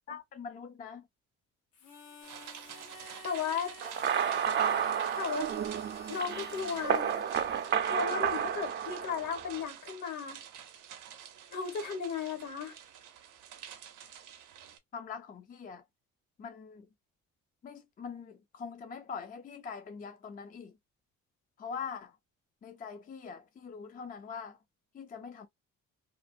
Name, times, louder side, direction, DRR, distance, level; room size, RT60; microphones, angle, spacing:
voice 1, 0.1-1.1 14.9-15.8 16.4-16.9 17.6-20.8 21.6-22.2 22.6-24.6 24.9-25.5, left 6 dB, 30° left, 0.4 m, -43 dB
Harmonica, 1.7-8.7, left 3 dB, 85° left, 0.9 m, -52 dB
sound 1, 2.2-14.8, right 9 dB, 85° right, 0.6 m, -49 dB
voice 2, 3.2-3.7 5.2-5.5 6.1-7.1 7.9-10.4 11.5-12.8, left 6 dB, 70° left, 1.3 m, -35 dB
sound 2, 3.8-9.6, right 8 dB, 40° right, 0.4 m, -31 dB
2.5 x 2.0 x 2.4 m
cardioid pair, 90°, 30 cm